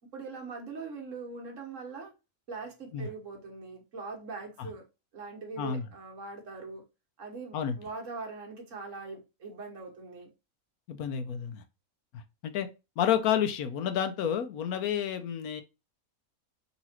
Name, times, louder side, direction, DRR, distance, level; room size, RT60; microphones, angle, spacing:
voice 1, 0.1-2.1 2.5-4.8 5.1-6.8 7.2-10.3, right 4 dB, 60° right, 1.6 m, -42 dB
voice 2, 10.9-11.6 12.1-12.7 13.0-15.6, left 9 dB, 85° left, 1.2 m, -30 dB
4.1 x 2.9 x 4.2 m
omnidirectional pair, 1.5 m